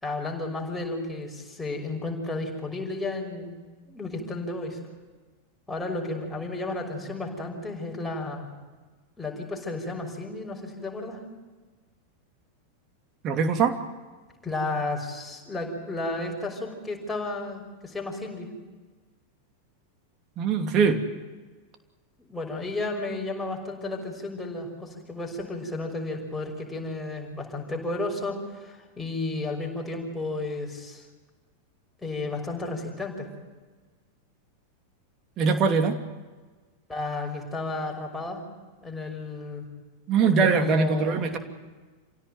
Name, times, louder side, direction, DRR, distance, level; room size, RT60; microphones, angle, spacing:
voice 1, 0.0-3.6 3.9-4.8 5.7-8.5 9.2-11.2 14.4-18.5 22.2-31.0 32.0-33.3 36.9-38.4 38.8-39.7 40.2-41.4, left 2 dB, 5° left, -1 dB, 6.2 m, -33 dB
voice 2, 13.2-13.8 20.4-21.0 35.4-35.9 40.1-41.4, right 5 dB, 35° right, 6 dB, 2.8 m, -22 dB
28.5 x 17.0 x 9.3 m, 1.3 s
figure-of-eight pair, 90°, 0 cm